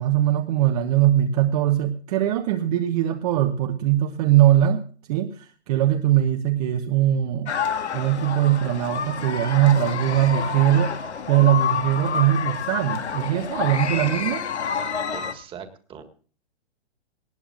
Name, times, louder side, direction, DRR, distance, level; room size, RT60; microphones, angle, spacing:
voice 1, 0.0-4.8 5.1-7.5 7.9-10.9 11.3-14.4, right 12 dB, 35° right, 6 dB, 1.0 m, -21 dB
sound 1, 7.5-15.3, left 7 dB, 85° left, 2.0 m, -28 dB
voice 2, 15.1-16.0, right 7 dB, 15° right, 7 dB, 1.8 m, -41 dB
19.0 x 16.5 x 2.5 m, 0.40 s
hypercardioid pair, 145°, 33 cm